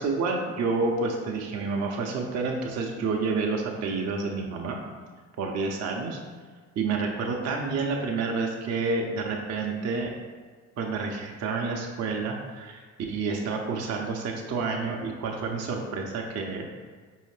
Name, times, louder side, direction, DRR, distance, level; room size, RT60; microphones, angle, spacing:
voice 1, 0.0-4.8 5.4-6.2 6.8-10.1 10.8-12.8 13.1-16.6, right 4 dB, 40° right, 0 dB, 0.6 m, -29 dB
4.8 x 2.7 x 3.2 m, 1.5 s
hypercardioid pair, 55°, 40 cm